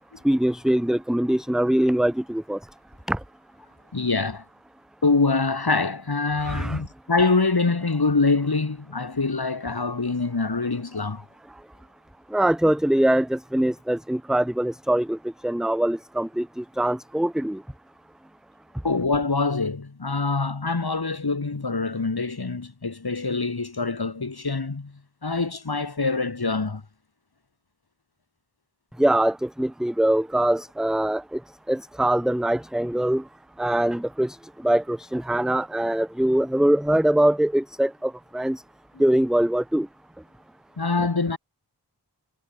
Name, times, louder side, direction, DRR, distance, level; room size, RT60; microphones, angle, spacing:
voice 1, 0.2-2.6 3.1-3.2 6.4-6.8 12.3-17.6 29.0-31.4 31.7-33.3 33.6-38.6 39.0-39.9 41.0-41.1, right 1 dB, ahead, 0.5 m, -23 dB
voice 2, 3.9-4.4 5.0-11.2 18.8-24.9 25.2-26.8 40.8-41.4, left 3 dB, 65° left, 4.6 m, -25 dB
wide cardioid pair, 60°, 41 cm